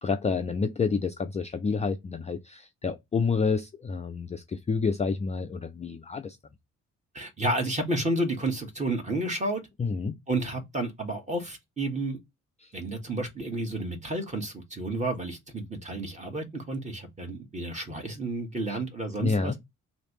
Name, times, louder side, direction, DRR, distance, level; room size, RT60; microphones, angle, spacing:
voice 1, 0.0-6.4 9.8-10.2 18.7-18.8 19.2-19.5, left 5 dB, 20° left, 0.5 m, -29 dB
voice 2, 7.1-9.6 10.3-12.2 12.7-19.5, right 2 dB, 20° right, 1.3 m, -31 dB
3.0 x 2.7 x 2.9 m
figure-of-eight pair, 40°, 37 cm